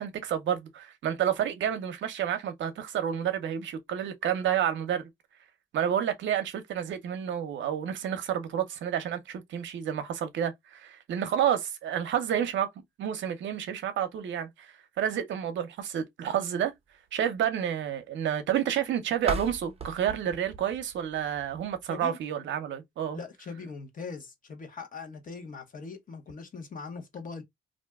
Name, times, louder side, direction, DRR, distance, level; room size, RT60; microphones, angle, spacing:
voice 1, 0.0-5.1 5.7-12.7 13.0-16.7 17.1-23.2, right 9 dB, 70° right, 0.7 m, -30 dB
sound 1, 19.2-22.0, right 4 dB, 30° right, 0.7 m, -38 dB
voice 2, 23.1-27.4, left 5 dB, 45° left, 0.9 m, -41 dB
2.5 x 2.2 x 3.4 m
cardioid pair, 90°, 20 cm